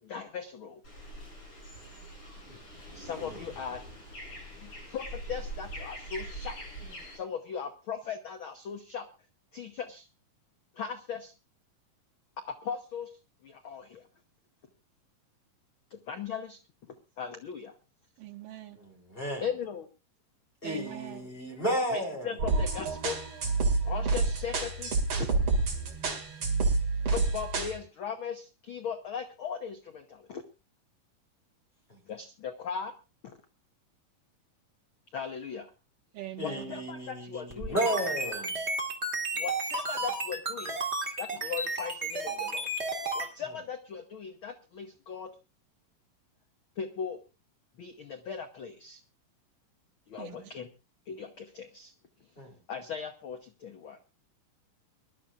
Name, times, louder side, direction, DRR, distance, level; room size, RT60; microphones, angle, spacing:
voice 1, 0.0-0.8 2.9-3.8 4.6-6.6 7.0-9.1 9.5-10.1 10.7-11.3 12.4-14.0 15.9-16.6 16.9-17.7 19.4-19.9 21.9-23.2 23.8-25.3 27.1-30.4 32.1-32.9 33.2-33.4 35.1-35.7 36.4-38.5 39.3-40.8 41.2-42.7 43.1-45.3 46.8-47.2 47.8-49.0 50.1-50.7 51.1-51.9 52.7-54.0, left 6 dB, 75° left, 1.2 m, -38 dB
sound 1, 0.8-7.2, equal, 40° left, 9.0 m, -43 dB
voice 2, 18.2-18.8 20.6-21.3 36.1-36.8 50.2-50.5, right 12 dB, 80° right, 3.1 m, -42 dB
voice 3, 18.8-19.5 20.6-22.4 31.9-32.0 36.4-38.6 52.4-52.5, equal, 15° left, 3.5 m, -33 dB
sound 2, 22.4-27.8, right 3 dB, 45° right, 3.1 m, -28 dB
sound 3, 37.5-43.3, right 2 dB, 20° right, 2.3 m, -32 dB
24.5 x 12.5 x 2.5 m
omnidirectional pair, 3.8 m